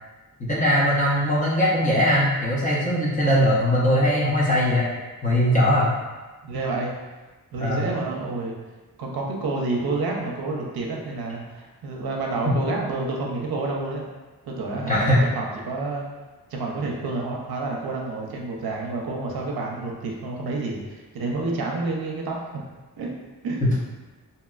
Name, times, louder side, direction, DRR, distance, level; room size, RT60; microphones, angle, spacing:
voice 1, 0.4-4.8 5.2-5.9 7.6-7.9 12.5-12.6 14.9-15.2 23.6-23.7, equal, 20° left, -6 dB, 0.7 m, -20 dB
voice 2, 6.4-6.9 7.5-8.5 9.0-14.1 14.4-16.0 16.5-22.6 23.0-23.1 23.4-23.8, right 3 dB, 70° right, -1 dB, 0.6 m, -29 dB
2.9 x 2.7 x 2.3 m, 1.2 s
wide cardioid pair, 105°, 38 cm